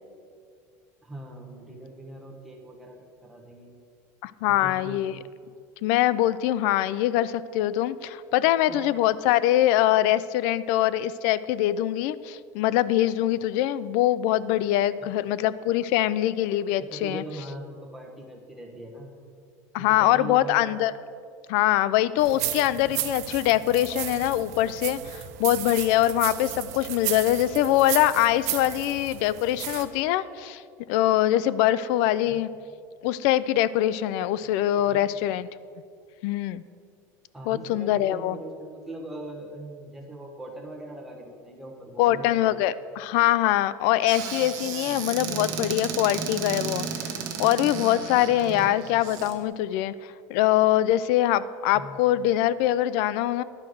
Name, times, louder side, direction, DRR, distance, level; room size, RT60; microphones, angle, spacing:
voice 1, 1.0-3.7 4.5-5.2 8.7-8.9 15.3-15.4 16.8-19.1 19.8-20.6 32.0-32.4 34.8-35.1 37.3-42.5 44.8-45.6 48.5-48.8 51.7-52.0, right 1 dB, 5° right, -2 dB, 1.2 m, -41 dB
voice 2, 4.2-5.1 5.8-17.2 19.7-20.9 21.5-30.6 30.9-32.5 33.0-35.5 36.2-36.6 37.5-38.4 42.0-46.9 47.4-53.4, left 13 dB, 65° left, 17 dB, 0.3 m, -23 dB
sound 1, 22.2-29.8, right 12 dB, 85° right, 0.8 m, -34 dB
Squeak / Cupboard open or close, 44.1-49.3, right 7 dB, 50° right, 1.0 m, -33 dB
10.5 x 4.5 x 6.3 m, 2.2 s
cardioid pair, 145°, 8 cm